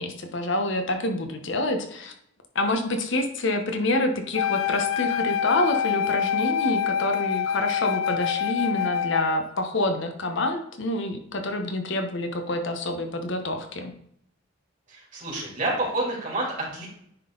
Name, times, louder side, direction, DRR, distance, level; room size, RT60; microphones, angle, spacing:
voice 1, 0.0-2.1 2.5-13.9, left 1 dB, 65° left, 5 dB, 0.9 m, -27 dB
Wind instrument woodwind instrument, 4.4-9.4, left 8 dB, 90° left, 0.4 m, -26 dB
voice 2, 14.9-16.9, right 2 dB, 40° right, -4 dB, 2.9 m, -29 dB
9.8 x 3.8 x 3.9 m, 0.71 s
head